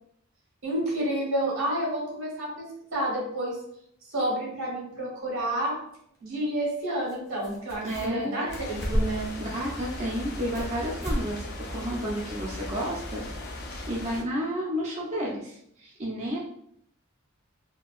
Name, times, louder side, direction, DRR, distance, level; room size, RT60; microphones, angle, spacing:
voice 1, 0.6-3.6 4.1-5.7 6.2-9.3, right 1 dB, 85° right, -3 dB, 1.4 m, -30 dB
sound 1, 5.4-5.5 7.1-7.2 7.4-8.2 8.5-9.3 9.8-10.7 11.0-11.3 11.6-11.7 12.2-12.3, equal, 15° left, 0.7 m, -31 dB
voice 2, 7.8-8.4 9.4-13.2 13.9-16.4, equal, 35° right, -4 dB, 0.5 m, -31 dB
sound 2, 8.5-14.2, equal, 90° left, 0.6 m, -40 dB
sound 3, 8.5-14.2, left 3 dB, 50° left, 0.5 m, -41 dB
3.6 x 2.3 x 2.4 m, 0.70 s
head